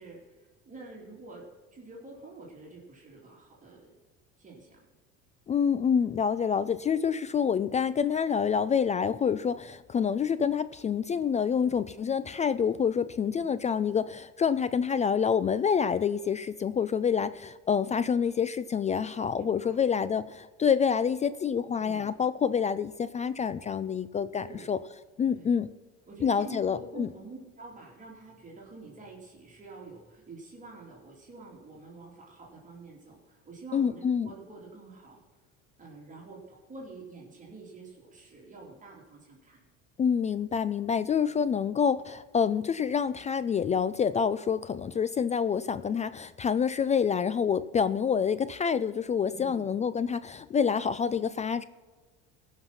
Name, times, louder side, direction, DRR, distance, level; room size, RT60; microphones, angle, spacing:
voice 1, 0.0-1.5 1.7-4.0 4.4-4.8 18.9-19.0 19.3-19.8 21.7-22.1 24.4-24.8 25.3-25.5 26.1-35.2 35.8-39.7 49.3-49.8, right 3 dB, 25° right, -3 dB, 2.9 m, -47 dB
voice 2, 5.5-24.8 25.2-25.7 26.2-27.1 33.7-34.3 40.0-51.6, left 7 dB, 25° left, 15 dB, 0.4 m, -27 dB
16.0 x 5.9 x 5.8 m, 1.4 s
supercardioid pair, 95°, 29 cm